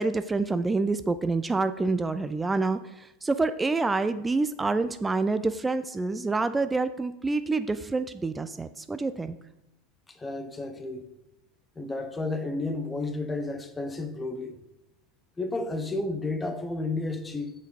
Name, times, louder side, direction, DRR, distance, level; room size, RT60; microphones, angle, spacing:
voice 1, 0.0-9.4, right 3 dB, 15° right, 0.3 m, -27 dB
voice 2, 10.1-11.1 11.8-14.6 15.4-17.5, left 2 dB, 15° left, 0.8 m, -32 dB
7.5 x 5.0 x 4.1 m
figure-of-eight pair, 80°, 0 cm